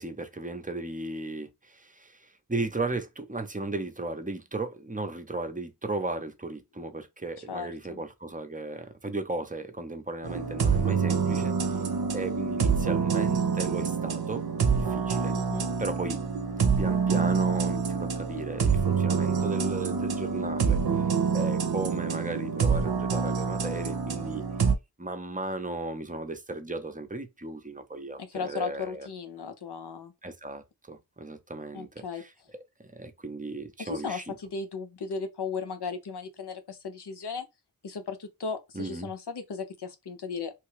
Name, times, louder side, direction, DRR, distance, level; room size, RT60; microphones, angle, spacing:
voice 1, 0.0-11.5 12.1-14.4 14.7-15.4 15.8-16.2 16.8-24.4 25.0-29.1 30.2-32.3 32.9-34.4 38.7-39.1, right 2 dB, 20° right, 0.6 m, -35 dB
voice 2, 7.5-8.0 15.3-15.7 28.2-30.1 31.7-32.2 33.8-37.5 37.8-40.5, left 5 dB, 90° left, 0.7 m, -36 dB
sound 1, 10.2-24.7, right 6 dB, 70° right, 0.6 m, -26 dB
3.2 x 2.3 x 3.1 m
wide cardioid pair, 50°, 39 cm